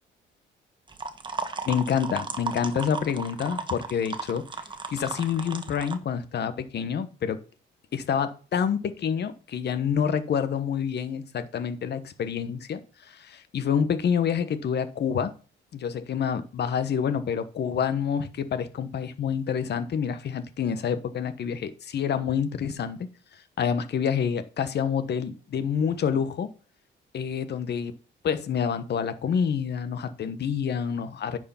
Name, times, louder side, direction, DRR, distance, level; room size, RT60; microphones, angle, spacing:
sound 1, 0.9-6.0, right 4 dB, 25° right, 1.2 m, -35 dB
voice 1, 1.6-4.4 4.9-7.4 7.9-12.8 13.1-15.3 15.7-23.1 23.6-26.5 27.1-27.9 28.2-31.4, left 7 dB, 55° left, 12 dB, 1.2 m, -27 dB
10.0 x 4.8 x 5.7 m, 0.37 s
cardioid pair, 90°, 20 cm